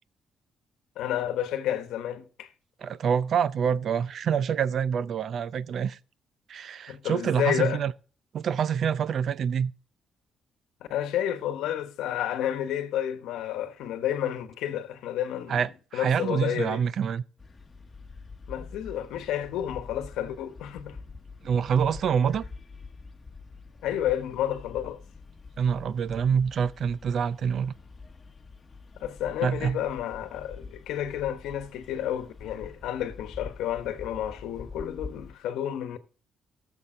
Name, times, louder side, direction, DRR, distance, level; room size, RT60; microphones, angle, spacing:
voice 1, 1.0-2.5 6.9-7.8 10.9-15.6 15.9-16.8 18.5-21.0 23.8-25.0 29.0-36.0, left 11 dB, 90° left, 1.1 m, -30 dB
voice 2, 2.8-6.0 6.5-7.9 8.3-9.7 15.5-17.2 21.4-22.4 25.6-27.7 29.4-29.8, right 7 dB, 60° right, 0.5 m, -26 dB
sound 1, 17.4-35.3, left 4 dB, 30° left, 1.2 m, -46 dB
14.5 x 7.1 x 3.7 m
cardioid pair, 90°, 0 cm